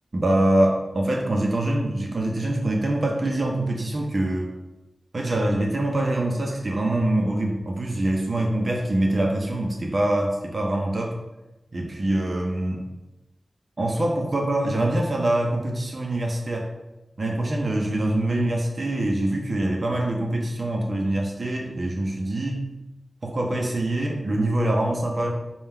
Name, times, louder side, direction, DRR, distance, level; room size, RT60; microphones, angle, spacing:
voice 1, 0.1-4.5 5.1-11.1 11.7-12.8 13.8-16.7 17.2-22.6 23.2-25.3, right 1 dB, 50° right, 0 dB, 0.6 m, -24 dB
3.6 x 2.3 x 4.3 m, 1.0 s
wide cardioid pair, 80°, 0 cm